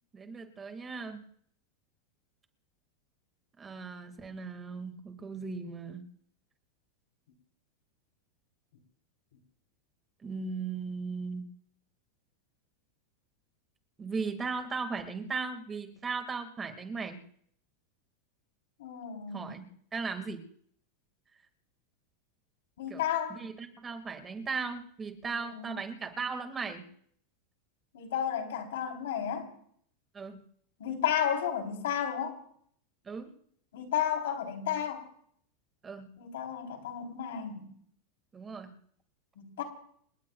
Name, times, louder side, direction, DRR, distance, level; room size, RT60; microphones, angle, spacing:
voice 1, 0.1-1.2 3.6-6.1 10.2-11.5 14.0-17.2 19.3-19.7 19.9-20.5 22.9-23.0 23.3-26.8 30.1-30.4 33.0-33.3 35.8-36.1 38.3-38.7, right 4 dB, 20° right, 7 dB, 2.0 m, -37 dB
voice 2, 18.8-19.6 22.8-23.4 25.3-25.7 27.9-29.5 30.8-32.4 33.7-35.0 36.2-37.7 39.4-39.6, left 9 dB, 85° left, 4 dB, 3.6 m, -32 dB
29.0 x 18.5 x 2.4 m, 0.63 s
supercardioid pair, 140°, 0 cm